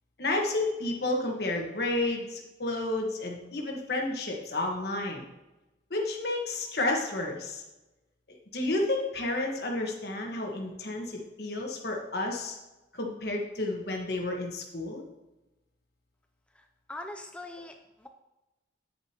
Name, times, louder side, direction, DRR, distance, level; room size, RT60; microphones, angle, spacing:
voice 1, 0.2-5.2 5.9-7.6 8.5-12.5 12.9-15.0, left 2 dB, 60° left, 1 dB, 1.4 m, -31 dB
voice 2, 16.5-18.1, left 2 dB, 5° left, 4 dB, 0.4 m, -43 dB
8.7 x 8.4 x 2.9 m, 1.0 s
head